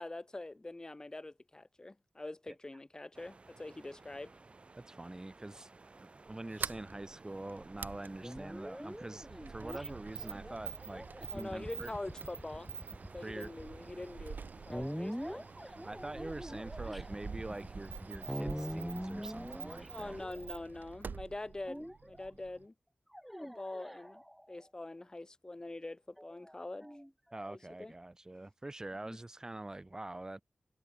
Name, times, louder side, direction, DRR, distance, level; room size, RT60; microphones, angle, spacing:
voice 1, 0.0-4.3 11.3-12.7 13.1-14.4 14.6-15.5 19.9-22.7 23.4-24.2 24.5-26.9 27.5-27.9 29.1-29.2, left 2 dB, 25° left, 3.5 m, -44 dB
sound 1, 3.1-20.3, right 3 dB, 40° right, 2.1 m, -56 dB
voice 2, 4.8-5.7 6.0-11.1 11.3-11.9 13.2-13.5 15.8-20.2 27.3-30.4, right 2 dB, 20° right, 1.6 m, -45 dB
Sliding door, 6.3-22.6, right 5 dB, 75° right, 1.3 m, -47 dB
sound 2, 8.2-20.9 21.7-22.3 23.1-24.6 26.2-27.6, equal, ahead, 3.2 m, -44 dB
wide cardioid pair, 120°, 3 cm